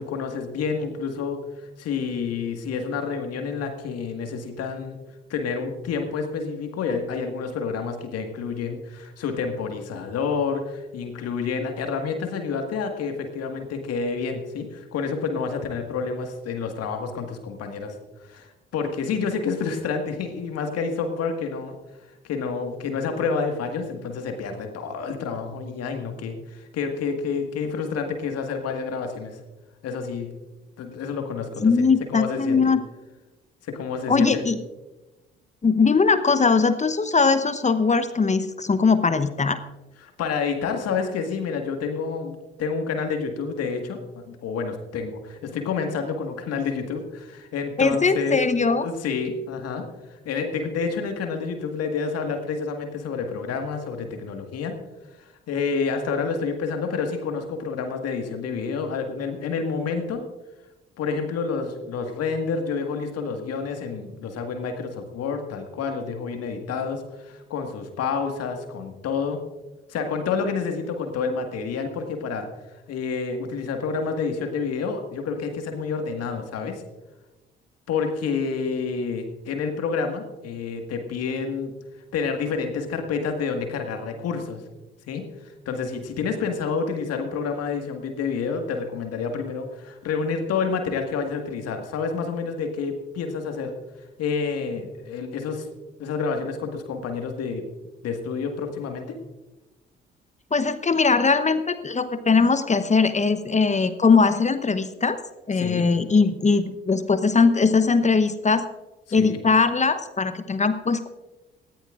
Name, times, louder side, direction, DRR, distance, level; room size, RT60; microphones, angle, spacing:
voice 1, 0.0-1.4 1.8-5.0 5.3-18.0 18.2-21.7 22.2-29.4 29.8-30.3 30.8-32.7 33.6-34.4 40.0-48.4 48.8-54.8 55.2-60.2 61.0-69.4 69.9-72.5 72.9-76.8 77.9-81.7 82.1-84.6 85.1-93.7 94.2-95.7 96.0-97.6 98.0-99.1 105.6-105.8 109.1-109.4, left 5 dB, 55° left, 5 dB, 1.8 m, -29 dB
voice 2, 31.6-32.8 34.1-34.6 35.6-39.6 47.8-48.9 100.5-105.2 105.5-108.6 109.1-111.1, left 4 dB, 25° left, 12 dB, 0.9 m, -20 dB
19.5 x 14.0 x 2.5 m, 1.1 s
figure-of-eight pair, 45°, 29 cm